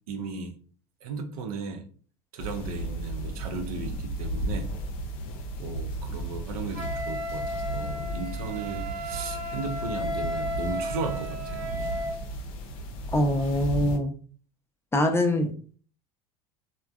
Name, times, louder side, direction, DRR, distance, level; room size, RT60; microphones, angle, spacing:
voice 1, 0.1-0.6 1.0-1.9 2.3-4.7 5.6-11.6, right 4 dB, 70° right, 6 dB, 0.6 m, -36 dB
sound 1, 2.4-14.0, right 1 dB, 60° left, 0.6 m, -34 dB
Wind instrument woodwind instrument, 6.7-12.2, equal, 45° right, 1.0 m, -34 dB
voice 2, 13.1-14.1 14.9-15.5, left 1 dB, 15° left, 4 dB, 0.5 m, -23 dB
3.2 x 2.1 x 2.3 m, 0.41 s
hypercardioid pair, 75°, 19 cm